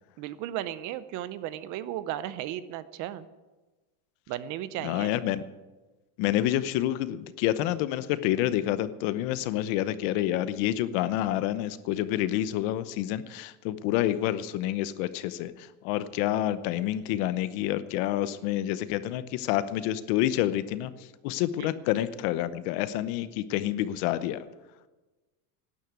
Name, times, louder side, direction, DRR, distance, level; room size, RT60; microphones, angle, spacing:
voice 1, 0.2-3.3 4.3-5.1 21.5-21.7, right 12 dB, 40° right, 15 dB, 0.6 m, -35 dB
voice 2, 4.8-5.4 6.2-20.9 21.2-24.4, left 13 dB, 55° left, 14 dB, 0.9 m, -28 dB
12.5 x 10.0 x 9.5 m, 1.2 s
cardioid pair, 165°, 47 cm